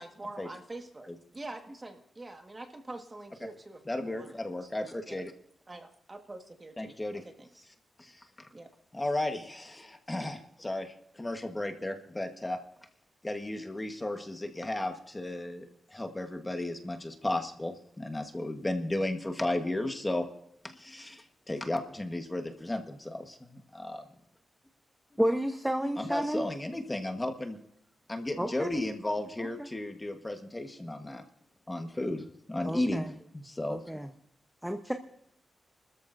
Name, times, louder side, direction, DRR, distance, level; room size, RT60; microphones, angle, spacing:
voice 1, 0.0-4.7 5.0-5.2 5.7-6.9 7.2-7.6 8.5-8.7, right 2 dB, 20° right, 4 dB, 1.6 m, -45 dB
voice 2, 3.9-5.3 6.8-7.2 8.0-8.5 8.9-12.6 13.2-20.2 20.6-24.0 26.0-27.6 28.1-31.2 31.7-33.1 33.3-34.0, left 1 dB, 15° left, 5 dB, 1.3 m, -34 dB
voice 3, 25.2-26.5 28.4-28.8 29.4-29.7 32.6-33.1 33.7-34.1 34.6-34.9, right 1 dB, 5° right, 5 dB, 0.9 m, -31 dB
28.5 x 13.5 x 2.6 m, 0.72 s
wide cardioid pair, 140°, 0 cm